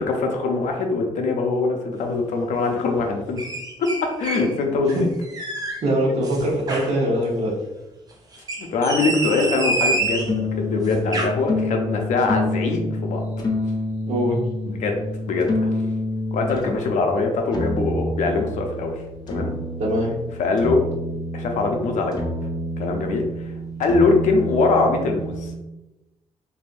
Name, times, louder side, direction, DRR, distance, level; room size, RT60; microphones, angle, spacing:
voice 1, 0.2-3.4 3.8-3.9 4.2-5.1 8.6-13.2 14.8-14.9 15.3-15.5 16.3-19.0 19.3-19.5 20.4-20.8 21.3-22.2 22.8-23.2 23.8-25.5, left 3 dB, 80° left, 2 dB, 0.6 m, -22 dB
sound 1, 3.4-4.5 4.9-5.8 6.2-6.9 8.3-10.3 10.9-11.3, right 2 dB, 30° right, 0.6 m, -27 dB
voice 2, 5.8-7.6 14.1-14.4 19.8-20.1, equal, 60° right, -3 dB, 1.1 m, -22 dB
sound 2, 10.0-16.7 17.5-25.6, left 1 dB, 30° left, 0.6 m, -28 dB
3.4 x 2.6 x 2.5 m, 0.98 s
cardioid pair, 120°, 12 cm